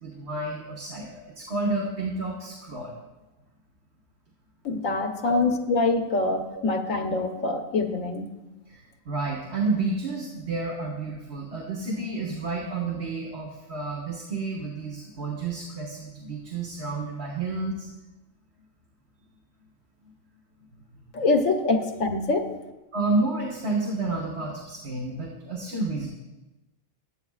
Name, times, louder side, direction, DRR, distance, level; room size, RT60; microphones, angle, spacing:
voice 1, 0.0-2.9 5.2-5.4 8.7-17.9 22.9-26.1, right 3 dB, 50° right, -2 dB, 1.7 m, -30 dB
voice 2, 4.6-8.3 21.1-22.5, left 3 dB, 70° left, 4 dB, 1.4 m, -25 dB
15.5 x 11.5 x 2.4 m, 1.0 s
omnidirectional pair, 1.4 m